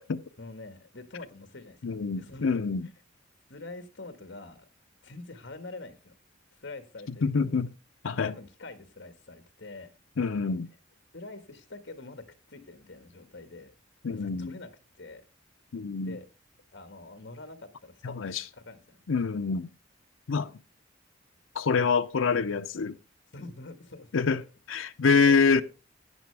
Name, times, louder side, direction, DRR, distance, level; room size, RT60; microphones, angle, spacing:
voice 1, 0.4-2.6 3.5-4.7 5.0-6.1 6.5-7.6 8.2-9.9 11.1-13.7 14.1-14.7 15.0-15.2 16.0-16.3 16.7-19.0 23.3-24.2, left 2 dB, 60° left, 1.7 m, -45 dB
voice 2, 1.8-2.9 7.2-7.7 8.0-8.3 10.2-10.7 14.0-14.5 15.7-16.2 18.0-18.4 19.1-19.7 20.3-20.5 21.5-23.0 24.1-24.4 24.7-25.6, left 5 dB, 90° left, 0.6 m, -26 dB
13.5 x 9.5 x 3.4 m
head